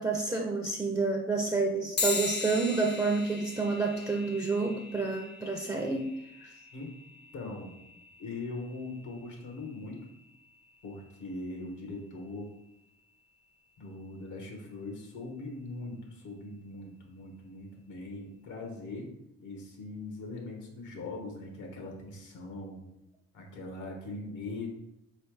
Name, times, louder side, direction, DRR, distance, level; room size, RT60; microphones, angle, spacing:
voice 1, 0.0-6.1 6.4-6.5, right 3 dB, 10° right, 2 dB, 0.4 m, -29 dB
sound 1, 2.0-11.8, left 4 dB, 35° left, 0.5 m, -40 dB
voice 2, 7.3-7.8 8.2-10.1 10.8-12.5 13.8-19.1 19.4-22.8 23.3-24.7, left 2 dB, 85° left, 2 dB, 1.1 m, -41 dB
3.3 x 3.1 x 4.6 m, 0.83 s
cardioid pair, 90°, 30 cm